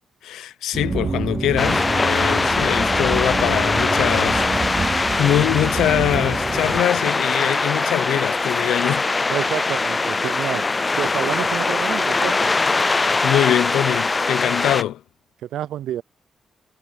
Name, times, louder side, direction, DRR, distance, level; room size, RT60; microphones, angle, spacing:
voice 1, 0.2-9.1 13.2-15.0, left 12 dB, 90° left, 0.6 m, -23 dB
sound 1, 0.7-6.8, right 4 dB, 40° right, 0.8 m, -27 dB
sound 2, 1.6-14.8, left 3 dB, 35° left, 0.3 m, -22 dB
voice 2, 9.3-10.7 11.0-12.5 15.4-16.0, right 12 dB, 85° right, 0.4 m, -28 dB
supercardioid pair, 60°, 0 cm